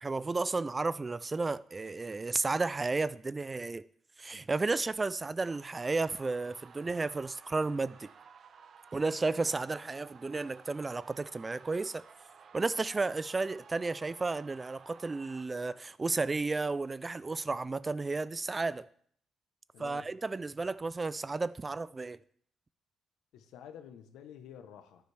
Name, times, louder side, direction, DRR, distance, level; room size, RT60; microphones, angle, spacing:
voice 1, 0.0-3.8 4.2-8.1 8.9-12.0 12.5-18.9 19.8-22.2, right 3 dB, 25° right, 0.3 m, -33 dB
sound 1, 5.4-15.5, right 6 dB, 55° right, 0.7 m, -55 dB
voice 2, 19.7-20.1 23.3-25.1, left 9 dB, 85° left, 0.9 m, -50 dB
11.5 x 9.6 x 3.4 m
cardioid pair, 90°, 0 cm